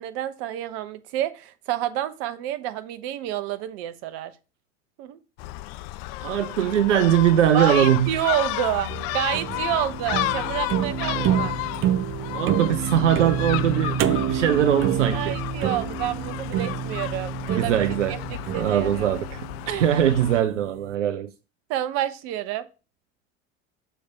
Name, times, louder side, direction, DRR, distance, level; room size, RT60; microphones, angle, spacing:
voice 1, 0.0-4.3 5.0-5.2 7.5-11.5 15.1-17.8 18.1-18.2 18.5-19.1 19.7-19.8 21.7-22.7, right 12 dB, 60° right, 0.9 m, -29 dB
Gull seagull, 5.4-20.4, left 17 dB, 60° left, 0.5 m, -32 dB
voice 2, 6.2-8.1 11.1-11.3 12.3-15.4 17.6-18.2 18.5-19.5 19.7-21.3, right 10 dB, 85° right, 0.5 m, -21 dB
sound 1, 8.9-20.1, right 9 dB, 35° right, 0.7 m, -28 dB
6.4 x 3.3 x 5.8 m
hypercardioid pair, 70°, 35 cm